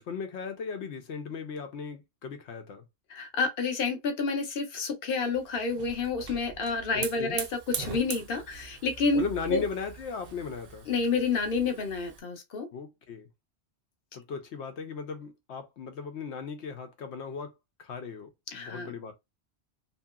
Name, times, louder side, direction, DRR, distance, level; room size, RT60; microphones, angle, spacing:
voice 1, 0.0-2.8 6.9-7.4 9.2-10.9 12.7-13.3 14.1-17.5 17.8-19.1, left 5 dB, 90° left, 1.0 m, -37 dB
voice 2, 3.1-7.4 7.8-9.2 9.5-9.6 10.9-12.7 18.5-18.9, left 4 dB, 60° left, 0.9 m, -29 dB
Hiss / Fire, 5.3-12.2, right 7 dB, 65° right, 0.8 m, -41 dB
2.9 x 2.8 x 2.3 m
omnidirectional pair, 1.1 m